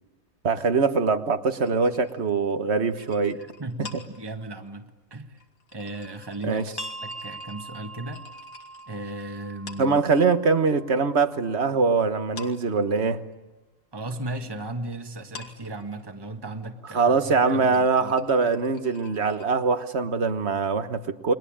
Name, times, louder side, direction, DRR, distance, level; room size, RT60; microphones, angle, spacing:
voice 1, 0.4-3.4 6.4-6.6 9.8-13.2 16.9-21.3, right 4 dB, 50° right, 10 dB, 1.5 m, -23 dB
sound 1, 1.6-10.6 10.9-11.9 12.2-19.5, left 5 dB, 90° left, 2.9 m, -48 dB
voice 2, 3.3-5.4 5.7-6.7 7.0-8.2 8.9-10.0 13.9-18.1, right 2 dB, 15° right, 5 dB, 1.6 m, -36 dB
sound 2, 6.8-12.1, right 2 dB, 20° left, 1.0 m, -42 dB
29.5 x 22.5 x 8.8 m, 1.1 s
omnidirectional pair, 1.5 m